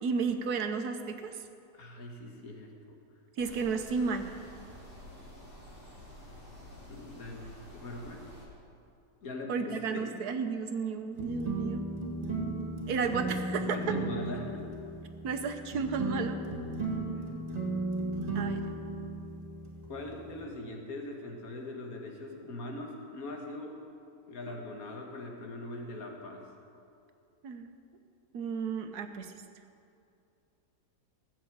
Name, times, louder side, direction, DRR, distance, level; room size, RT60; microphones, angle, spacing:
voice 1, 0.0-1.3 3.4-4.3 9.5-11.8 12.9-13.8 15.2-16.4 18.3-18.6 27.4-27.7 28.3-29.3, right 5 dB, 80° right, 7 dB, 1.4 m, -32 dB
voice 2, 1.7-3.0 6.9-8.3 9.2-10.2 13.6-14.8 19.9-23.8 24.3-26.5, left 2 dB, 65° left, 1 dB, 2.1 m, -41 dB
sound 1, 3.4-8.5, left 1 dB, 35° left, 3.1 m, -50 dB
sound 2, 11.1-20.4, right 2 dB, 45° right, 2.2 m, -35 dB
16.0 x 7.3 x 8.7 m, 2.6 s
omnidirectional pair, 1.7 m